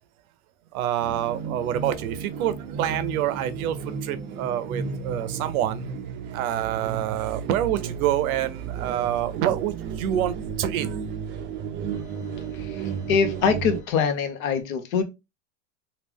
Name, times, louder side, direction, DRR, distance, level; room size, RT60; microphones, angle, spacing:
voice 1, 0.7-5.9 6.3-11.0, right 11 dB, 90° right, 0.7 m, -27 dB
sound 1, 1.0-13.8, right 6 dB, 30° right, 0.4 m, -34 dB
voice 2, 12.5-15.0, left 6 dB, 75° left, 1.0 m, -24 dB
3.2 x 2.4 x 3.5 m
supercardioid pair, 140°, 42 cm